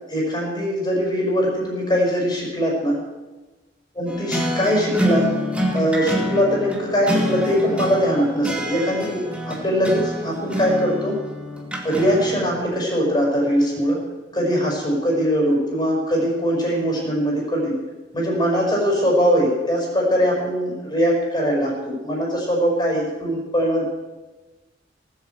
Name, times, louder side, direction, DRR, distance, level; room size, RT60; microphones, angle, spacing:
voice 1, 0.1-3.0 4.0-5.3 5.7-11.2 11.8-14.0 14.3-17.8 18.1-23.9, equal, 25° left, -2 dB, 5.4 m, -21 dB
sound 1, 4.1-12.6, equal, 5° right, 2.3 m, -27 dB
18.5 x 8.3 x 8.1 m, 1.2 s
head